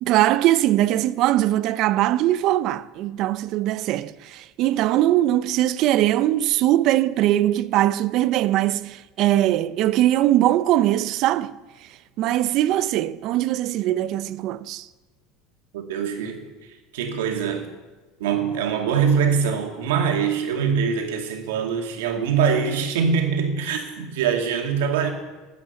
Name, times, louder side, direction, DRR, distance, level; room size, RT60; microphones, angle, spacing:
voice 1, 0.0-11.6 12.2-14.9, right 14 dB, 55° right, 0.6 m, -21 dB
voice 2, 15.7-16.4 16.9-17.7 18.2-25.1, right 6 dB, 85° right, 2.2 m, -23 dB
13.0 x 8.4 x 7.1 m
supercardioid pair, 110°, 0 cm